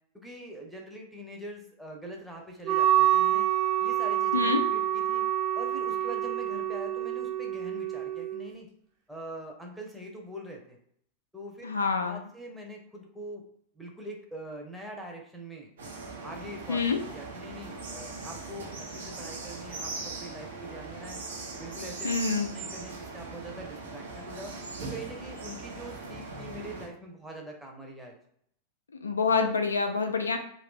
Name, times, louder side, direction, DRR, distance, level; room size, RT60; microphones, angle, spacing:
voice 1, 0.1-3.5 3.8-5.2 5.5-8.7 9.1-10.8 11.3-11.7 12.0-13.4 13.7-15.7 16.2-21.2 21.6-24.5 24.8-28.1, right 1 dB, 5° right, 0 dB, 0.8 m, -43 dB
Wind instrument woodwind instrument, 2.6-8.5, right 12 dB, 35° right, 0.8 m, -27 dB
voice 2, 4.3-4.7 11.6-12.2 16.7-17.0 22.0-22.5 29.0-30.4, left 4 dB, 75° left, 5 dB, 0.4 m, -27 dB
sound 1, 15.8-26.9, right 3 dB, 65° right, 0.9 m, -40 dB
2.6 x 2.6 x 3.6 m, 0.67 s
figure-of-eight pair, 90°, 0 cm